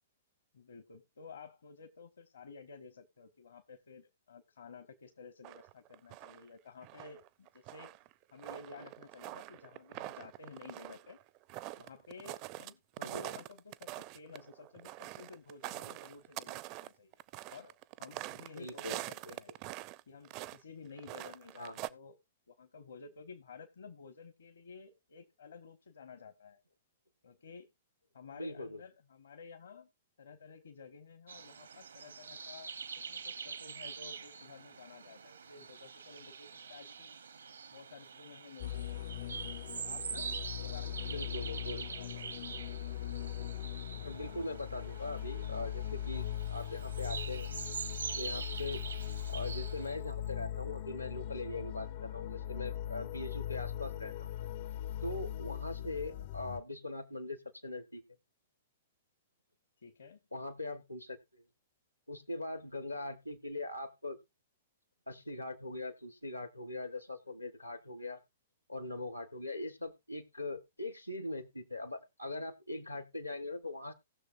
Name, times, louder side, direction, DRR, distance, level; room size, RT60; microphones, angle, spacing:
voice 1, 0.5-7.9 8.3-11.2 11.8-17.2 17.5-19.5 20.1-22.2 22.5-26.6 27.2-27.7 28.1-29.9 30.2-37.2 37.7-39.1 39.7-42.2 59.8-60.2, left 5 dB, 65° left, 9 dB, 1.0 m, -53 dB
sound 1, 5.4-6.5 6.8-12.7 13.0-20.0 20.2-20.6 20.9-21.9, right 17 dB, 35° right, 0.4 m, -45 dB
voice 2, 18.6-19.3 21.6-21.8 28.3-28.8 41.0-41.9 44.0-47.5 48.2-48.8 49.3-54.3 55.0-58.0 60.3-61.4 62.1-64.2 65.1-68.2 68.7-73.9, left 2 dB, 85° left, 11 dB, 1.3 m, -41 dB
sound 2, 31.3-49.9, right 6 dB, 70° right, 0.8 m, -45 dB
sound 3, 38.6-56.6, left 11 dB, 45° left, 0.5 m, -40 dB
18.5 x 6.5 x 2.6 m, 0.23 s
figure-of-eight pair, 110°, 0 cm